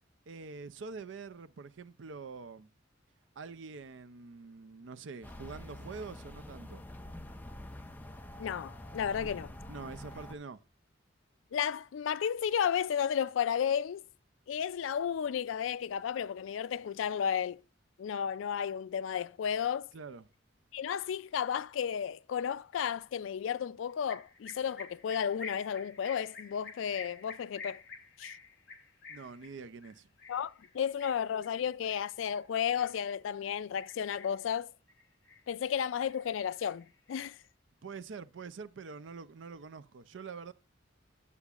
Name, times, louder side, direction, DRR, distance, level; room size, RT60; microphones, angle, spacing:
voice 1, 0.3-2.7 3.4-6.8 9.2-9.3 9.7-10.6 19.9-20.3 29.1-30.1 37.8-40.5, right 4 dB, 70° right, 0.5 m, -45 dB
sound 1, 5.2-10.4, left 1 dB, 10° left, 0.5 m, -46 dB
voice 2, 8.4-9.5 11.5-14.0 14.5-17.6 18.0-19.9 20.7-27.8 28.2-28.3 30.3-34.7 35.5-37.4, left 8 dB, 80° left, 0.3 m, -33 dB
sound 2, 24.1-33.4 33.8-34.5 34.9-35.8 36.1-37.4, left 5 dB, 60° left, 1.4 m, -49 dB
9.7 x 7.0 x 2.4 m
head